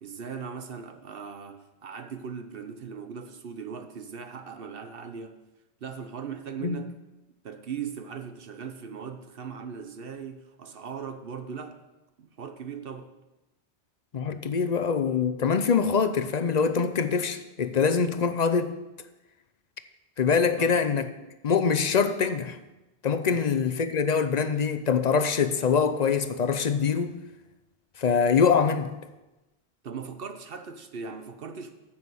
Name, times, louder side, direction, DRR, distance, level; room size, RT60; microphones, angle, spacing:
voice 1, 0.0-5.3 5.8-7.0 7.4-11.9 12.2-13.1 20.6-20.8 23.3-23.5 29.8-31.7, right 6 dB, 60° right, 1.0 m, -39 dB
voice 2, 14.1-18.8 20.2-21.1 21.4-22.6 23.0-27.1 28.0-28.9, left 6 dB, 45° left, 0.7 m, -24 dB
9.5 x 7.4 x 6.3 m
omnidirectional pair, 1.1 m